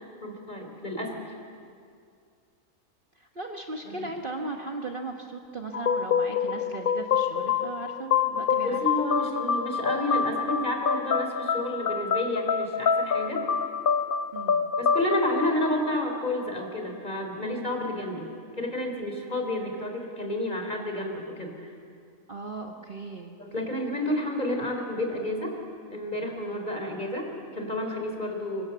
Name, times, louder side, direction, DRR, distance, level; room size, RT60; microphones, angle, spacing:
voice 1, 0.2-1.3 3.8-4.1 8.6-13.4 14.8-21.7 23.4-25.6 25.9-28.6, left 1 dB, 30° left, 2 dB, 3.5 m, -30 dB
voice 2, 3.1-8.9 14.3-14.7 22.3-23.3, right 3 dB, 40° right, 2 dB, 1.4 m, -37 dB
sound 1, 5.7-16.4, left 6 dB, 50° left, 0.6 m, -27 dB
24.5 x 23.5 x 6.9 m, 2.3 s
omnidirectional pair, 1.5 m